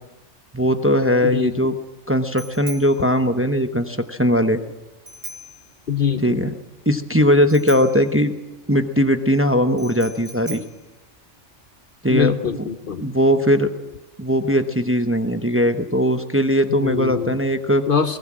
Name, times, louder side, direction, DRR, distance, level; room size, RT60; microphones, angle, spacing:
voice 1, 0.5-1.8 2.1-4.6 6.2-6.5 6.9-8.3 8.7-10.6 12.0-12.6 13.0-13.7 14.2-17.9, equal, 10° right, 8 dB, 0.9 m, -19 dB
Bicycle bell, 0.8-11.8, right 1 dB, 50° right, 3.4 m, -42 dB
voice 2, 1.2-1.7 5.9-6.5 12.1-13.1 16.7-17.4 17.9-18.2, left 7 dB, 50° left, 10 dB, 0.9 m, -23 dB
21.0 x 18.5 x 7.5 m, 1.1 s
omnidirectional pair, 1.2 m